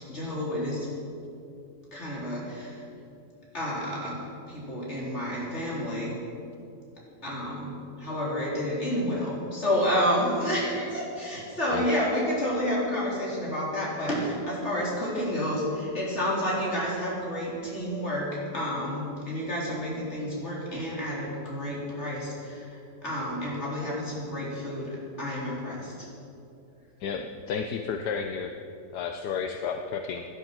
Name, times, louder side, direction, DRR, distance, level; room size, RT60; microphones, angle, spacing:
voice 1, 0.1-0.9 1.9-2.8 3.5-6.2 7.2-26.1, equal, 40° left, -5 dB, 4.2 m, -30 dB
voice 2, 27.0-28.5 28.9-30.2, left 6 dB, 80° left, 5 dB, 1.3 m, -32 dB
17.5 x 11.0 x 6.2 m, 2.7 s
omnidirectional pair, 1.8 m